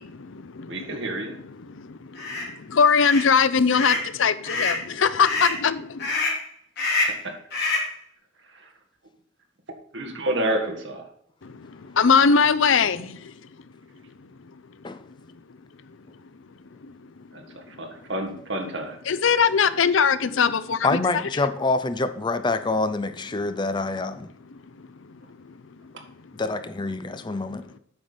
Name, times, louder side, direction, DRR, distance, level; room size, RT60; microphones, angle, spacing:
voice 1, 0.0-6.1 11.4-13.4 16.8-17.0 19.1-21.0 21.4-21.5 24.5-24.6 25.4-25.5, left 6 dB, 80° left, 15 dB, 0.6 m, -22 dB
voice 2, 0.7-1.4 7.2-7.4 8.5-8.7 9.9-11.0 17.3-19.0 25.9-26.0, right 1 dB, 65° right, 4 dB, 1.8 m, -29 dB
sound 1, 2.2-2.4 2.9-3.3 3.7-4.1 4.4-4.8 5.2-5.6 6.0-6.4 6.8-7.2 7.5-7.9, left 3 dB, 55° left, 3.1 m, -26 dB
voice 3, 20.8-24.3 26.4-27.6, left 3 dB, 25° left, 11 dB, 0.5 m, -26 dB
8.8 x 5.8 x 5.1 m, 0.69 s
head